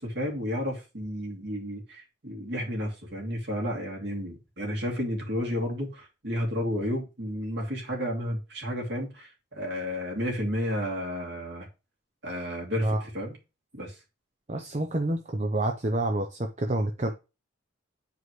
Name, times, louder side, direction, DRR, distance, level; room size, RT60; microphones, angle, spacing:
voice 1, 0.0-11.7 12.2-13.4 13.7-13.9, equal, 55° right, 2.5 m, -32 dB
voice 2, 14.5-17.1, right 1 dB, 35° right, 0.7 m, -28 dB
9.4 x 4.8 x 3.2 m
head